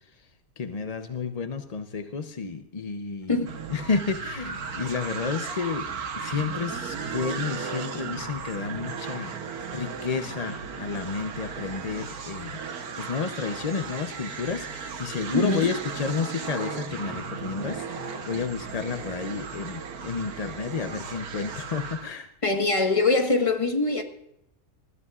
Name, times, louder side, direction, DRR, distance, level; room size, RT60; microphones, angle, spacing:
voice 1, 0.6-3.4 3.7-5.9 6.2-9.3 9.7-12.6 13.0-22.3, left 5 dB, 50° left, 0.4 m, -31 dB
sound 1, 3.5-22.1, right 5 dB, 70° right, 1.6 m, -36 dB
voice 2, 15.3-15.7 22.4-24.0, left 3 dB, 20° left, 1.4 m, -23 dB
20.5 x 13.5 x 2.4 m
omnidirectional pair, 1.6 m